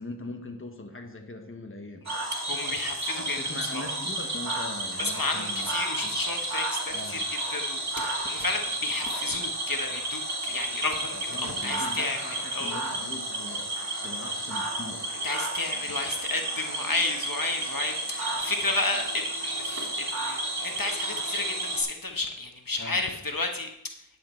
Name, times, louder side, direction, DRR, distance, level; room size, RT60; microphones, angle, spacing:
voice 1, 0.0-2.1 3.1-5.7 6.0-6.2 6.9-7.3 11.1-13.6 14.0-15.1 22.8-23.0, left 2 dB, 30° left, 4 dB, 1.3 m, -41 dB
Cricket / Frog, 2.0-21.8, right 2 dB, 45° right, 3.2 m, -32 dB
voice 2, 2.3-3.9 5.0-7.2 7.5-12.8 15.2-23.7, left 2 dB, 60° left, 4 dB, 1.3 m, -32 dB
10.0 x 8.8 x 4.4 m, 0.80 s
wide cardioid pair, 45°, 39 cm